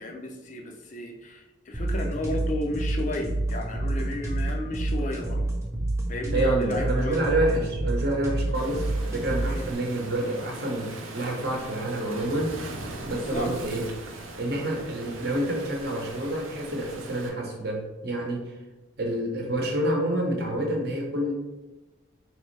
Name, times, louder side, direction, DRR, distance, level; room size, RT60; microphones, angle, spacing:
voice 1, 0.0-5.4 6.1-7.2 9.5-9.6 13.3-13.5, left 1 dB, 35° left, 2 dB, 0.4 m, -33 dB
sound 1, 1.7-9.7, right 1 dB, 15° right, 0.7 m, -28 dB
voice 2, 6.3-12.8 13.0-13.9 14.1-18.5 19.0-21.3, right 1 dB, 50° right, 0 dB, 0.9 m, -28 dB
Waves surf, 8.5-17.3, right 2 dB, 85° right, 0.6 m, -40 dB
4.3 x 3.2 x 3.2 m, 1.1 s
head